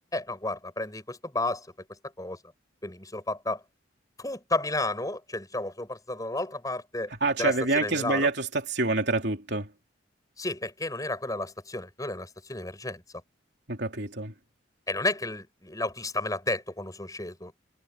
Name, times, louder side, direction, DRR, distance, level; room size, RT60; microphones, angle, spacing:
voice 1, 0.1-1.7 2.2-2.4 2.8-3.6 4.2-7.1 7.4-8.3 10.4-13.0 14.9-17.5, left 2 dB, 20° left, 7.0 m, -32 dB
voice 2, 7.2-9.7 13.7-14.3, right 3 dB, 60° right, 3.6 m, -27 dB
head